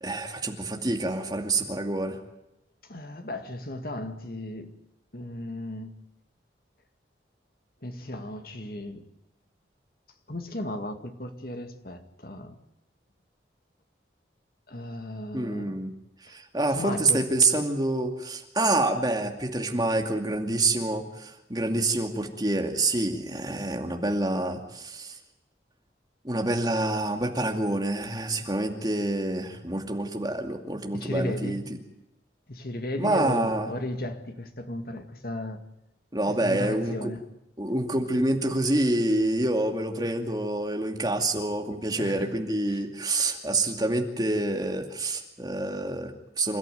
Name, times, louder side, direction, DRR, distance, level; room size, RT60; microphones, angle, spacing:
voice 1, 0.0-2.2 15.3-15.9 16.2-25.2 26.2-31.8 33.0-33.7 36.1-37.1 37.6-46.6, right 2 dB, 20° right, 2.5 m, -27 dB
voice 2, 2.8-4.7 5.1-5.9 7.8-9.1 10.3-12.6 14.7-15.8 16.3-16.4 16.7-17.3 30.9-31.7 32.5-35.6 36.3-37.2 41.9-42.3, left 1 dB, 50° left, 2.2 m, -35 dB
27.5 x 14.0 x 9.3 m
head